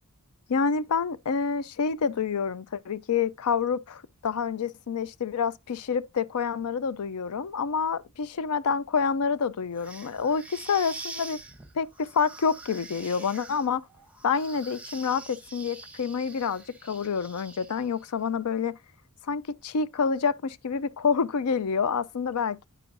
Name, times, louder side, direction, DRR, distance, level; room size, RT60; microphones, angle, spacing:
voice 1, 0.5-11.4 11.8-13.8 14.2-18.8 19.3-22.7, left 5 dB, 75° left, 0.5 m, -28 dB
sound 1, 9.7-18.0, right 3 dB, 5° right, 0.8 m, -45 dB
8.8 x 6.1 x 2.6 m
head